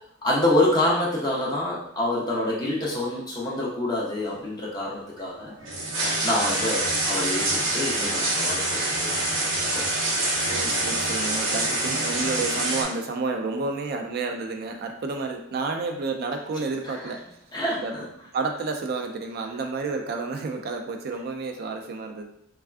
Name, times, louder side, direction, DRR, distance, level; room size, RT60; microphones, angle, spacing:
voice 1, 0.2-5.5 6.2-9.2 9.5-9.9 10.2-10.3 16.9-17.0 17.5-18.0, left 1 dB, 20° left, -5 dB, 0.7 m, -26 dB
sound 1, 5.2-12.8, right 2 dB, 65° right, 0.8 m, -26 dB
voice 2, 10.5-17.4 17.8-17.9 18.3-22.3, right 3 dB, 50° right, 4 dB, 0.3 m, -30 dB
3.3 x 2.3 x 2.3 m, 0.75 s
head